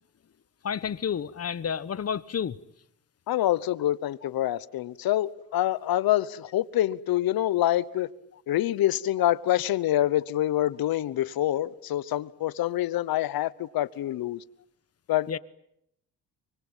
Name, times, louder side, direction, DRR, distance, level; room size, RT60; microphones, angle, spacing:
voice 1, 0.6-2.6 15.3-15.4, left 7 dB, 40° left, 1.1 m, -30 dB
voice 2, 3.3-8.1 8.5-14.4 15.1-15.4, left 13 dB, 70° left, 1.0 m, -26 dB
25.0 x 23.5 x 9.0 m
cardioid pair, 85°, 37 cm